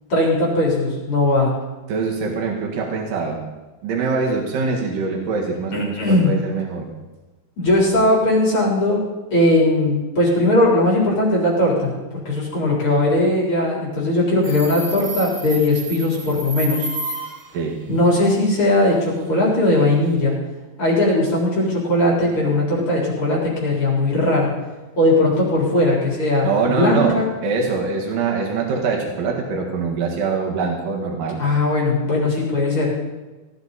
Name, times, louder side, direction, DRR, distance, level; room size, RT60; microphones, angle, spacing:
voice 1, 0.1-1.5 5.7-6.3 7.6-9.0 9.3-16.9 17.9-20.3 20.8-24.5 25.0-27.3 31.4-32.9, left 1 dB, 40° left, -4 dB, 4.5 m, -19 dB
voice 2, 1.9-3.4 3.8-6.9 17.5-17.8 26.4-31.4, right 4 dB, 85° right, 0 dB, 3.4 m, -23 dB
Subway metro underground, 14.4-17.6, right 3 dB, 65° right, 2.6 m, -31 dB
18.0 x 13.0 x 4.1 m, 1.2 s
omnidirectional pair, 3.7 m